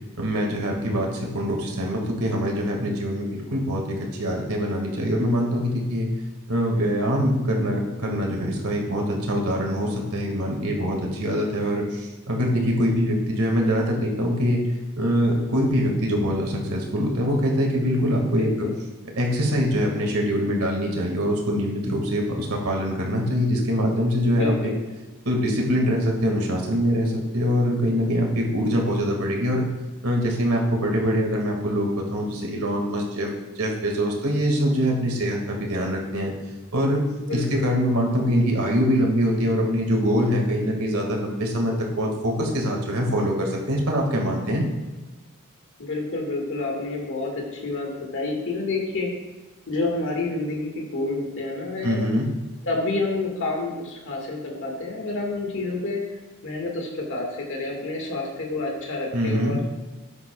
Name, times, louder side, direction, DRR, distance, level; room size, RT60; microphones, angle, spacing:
voice 1, 0.2-6.1 6.5-14.6 15.0-18.7 19.2-24.7 25.3-29.7 30.0-36.3 36.7-37.0 37.3-44.7 51.8-52.3 59.1-59.5, equal, 75° right, 0 dB, 2.0 m, -24 dB
voice 2, 18.3-18.7 24.2-24.7 37.2-37.7 45.8-49.1 49.7-52.0 52.6-56.0 56.4-59.7, left 3 dB, 60° left, 0 dB, 1.8 m, -29 dB
13.0 x 9.6 x 2.3 m, 1.2 s
head